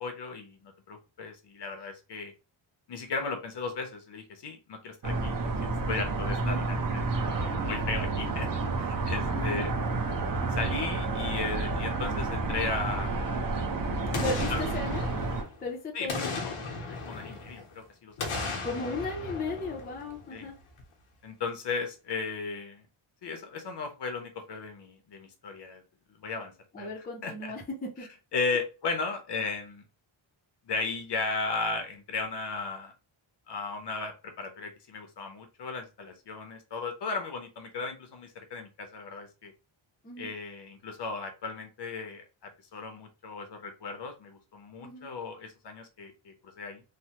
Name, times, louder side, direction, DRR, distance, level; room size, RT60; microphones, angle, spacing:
voice 1, 0.0-2.3 2.9-5.4 5.9-8.5 8.8-9.7 10.5-13.1 14.5-14.6 15.9-18.6 20.3-20.5 21.2-22.8 23.2-25.8 26.2-27.5 28.3-29.8 30.7-32.9 33.5-39.5 40.2-46.8, left 4 dB, 55° left, 5 dB, 0.8 m, -36 dB
sound 1, 5.0-15.4, right 3 dB, 45° right, 0.7 m, -30 dB
voice 2, 6.4-6.7 9.3-9.7 14.2-15.1 15.6-16.5 18.6-20.6 26.7-27.6 28.0-28.1 40.0-40.3 44.8-45.1, left 3 dB, 20° left, -1 dB, 0.5 m, -36 dB
Boom, 14.1-15.6 16.1-17.7 18.2-20.4 20.8-20.9, left 4 dB, 85° left, 1.0 m, -36 dB
3.3 x 2.1 x 2.8 m, 0.31 s
wide cardioid pair, 165°, 49 cm